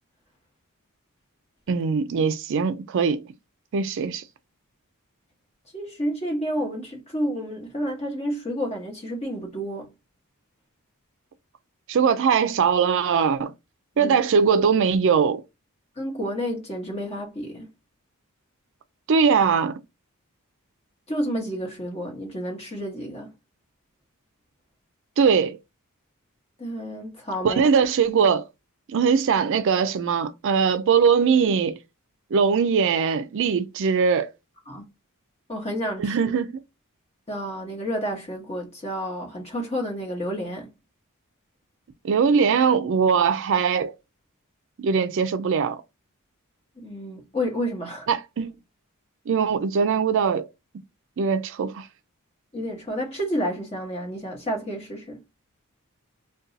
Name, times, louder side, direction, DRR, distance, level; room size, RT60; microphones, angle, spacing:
voice 1, 1.7-3.2 3.7-4.2 11.9-13.5 14.0-15.4 19.1-19.8 25.2-25.6 27.4-28.5 28.9-31.8 32.3-34.3 36.0-36.6 42.0-43.9 44.8-45.8 48.1-48.5 49.3-50.5 51.2-51.9, right 6 dB, 60° right, 0.4 m, -21 dB
voice 2, 5.7-9.9 14.0-14.2 16.0-17.7 21.1-23.3 26.6-27.7 34.7-34.8 35.5-36.3 37.3-40.7 46.8-48.1 52.5-55.2, equal, 30° left, 1.1 m, -30 dB
2.6 x 2.2 x 3.8 m
head